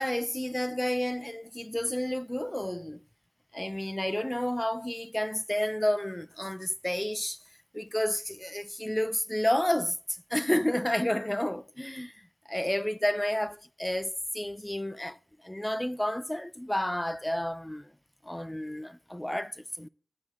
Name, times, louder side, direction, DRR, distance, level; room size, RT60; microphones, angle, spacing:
voice 1, 0.0-3.0 3.5-7.4 7.7-10.0 10.3-12.1 12.5-15.2 15.4-17.9 18.3-19.9, left 1 dB, 10° left, 0.5 m, -30 dB
10.5 x 9.6 x 3.1 m
cardioid pair, 50°, 0 cm